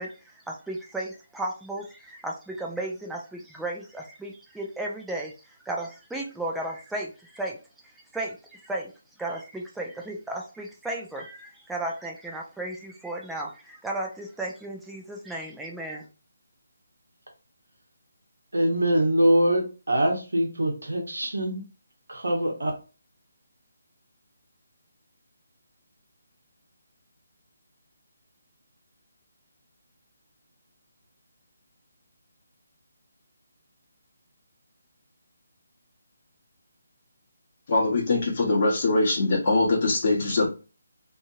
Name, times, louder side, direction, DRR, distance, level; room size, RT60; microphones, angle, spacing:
voice 1, 0.0-7.6 7.8-8.9 9.2-16.1, right 1 dB, 5° right, -1 dB, 0.4 m, -34 dB
voice 2, 18.5-21.6 22.1-22.7, right 1 dB, 70° right, 2 dB, 1.0 m, -23 dB
voice 3, 37.7-40.5, left 2 dB, 40° left, -3 dB, 1.0 m, -22 dB
2.8 x 2.6 x 2.5 m, 0.32 s
figure-of-eight pair, 145°, 0 cm